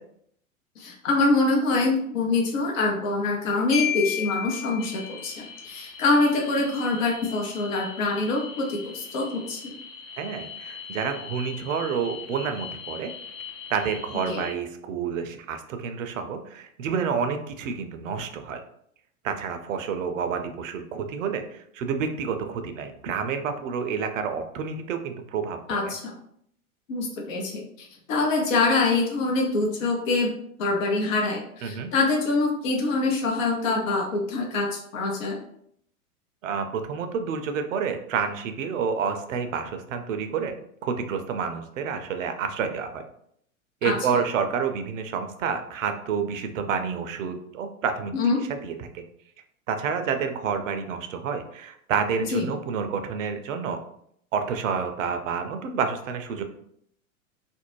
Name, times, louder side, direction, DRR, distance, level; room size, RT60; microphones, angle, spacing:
voice 1, 0.8-9.7 14.3-14.4 25.7-26.1 26.9-27.5 27.8-30.3 30.6-35.4 43.8-43.9 48.1-48.4 52.3-52.4, left 3 dB, 65° left, 0 dB, 0.8 m, -25 dB
Marimba xylophone, 3.7-5.5, left 11 dB, 10° right, 0.6 m, -31 dB
sound 1, 4.8-14.5, left 6 dB, 40° left, 0.4 m, -41 dB
voice 2, 10.2-13.1 13.7-18.6 19.2-25.6 25.8-25.9 31.6-31.9 36.4-40.5 40.8-43.0 43.8-48.1 48.6-49.0 49.7-53.8 54.3-56.4, right 6 dB, 65° right, 7 dB, 0.5 m, -29 dB
2.5 x 2.0 x 3.1 m, 0.69 s
figure-of-eight pair, 95°, 43 cm